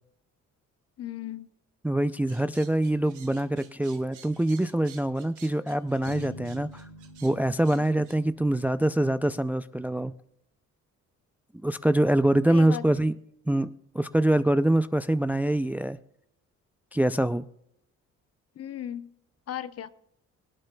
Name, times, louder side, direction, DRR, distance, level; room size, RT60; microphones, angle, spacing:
voice 1, 1.0-1.5 7.7-7.9 12.5-12.8 18.6-19.1 19.5-19.9, left 11 dB, 55° left, 14 dB, 0.7 m, -36 dB
voice 2, 1.8-6.9 7.2-10.1 11.6-13.1 13.5-16.0 16.9-17.4, right 1 dB, 5° right, 13 dB, 0.3 m, -24 dB
sound 1, 2.3-8.2, right 8 dB, 85° right, 1.5 m, -52 dB
sound 2, 6.1-9.1, left 2 dB, 75° left, 2.8 m, -45 dB
25.5 x 8.7 x 2.2 m, 0.72 s
cardioid pair, 90°, 30 cm